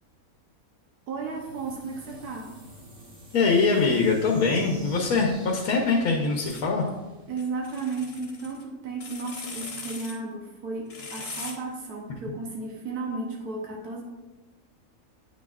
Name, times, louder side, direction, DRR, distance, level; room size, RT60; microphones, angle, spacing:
sound 1, 1.1-7.9, right 1 dB, 70° right, 2.7 m, -49 dB
voice 1, 1.1-2.5 7.3-14.0, right 3 dB, 85° right, -1 dB, 1.3 m, -34 dB
voice 2, 3.3-6.8, left 4 dB, 75° left, 0 dB, 1.2 m, -23 dB
sound 2, 6.4-6.6 7.4-8.6 9.0-10.2 10.9-11.6, left 4 dB, 45° left, 1.1 m, -40 dB
9.2 x 6.2 x 2.4 m, 1.1 s
omnidirectional pair, 1.6 m